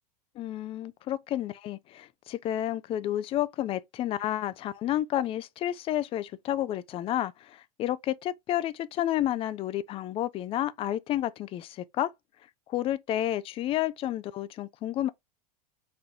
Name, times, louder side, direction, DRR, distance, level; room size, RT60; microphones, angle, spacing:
voice 1, 0.4-12.1 12.7-15.1, left 12 dB, 30° left, 0.4 m, -30 dB
4.2 x 2.6 x 3.5 m
hypercardioid pair, 90°, 19 cm